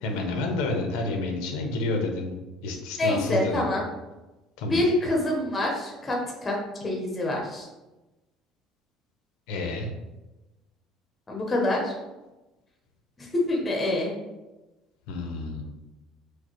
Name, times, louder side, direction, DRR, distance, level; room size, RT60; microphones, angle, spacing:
voice 1, 0.0-2.4 2.6-3.7 4.6-4.8 9.5-9.9 15.1-15.6, left 2 dB, 90° left, 4 dB, 0.6 m, -29 dB
voice 2, 3.0-3.8 4.7-7.7 11.3-11.9 13.2-14.1, left 1 dB, 15° left, -1 dB, 0.6 m, -26 dB
4.7 x 2.0 x 2.9 m, 1.1 s
cardioid pair, 180°, 0 cm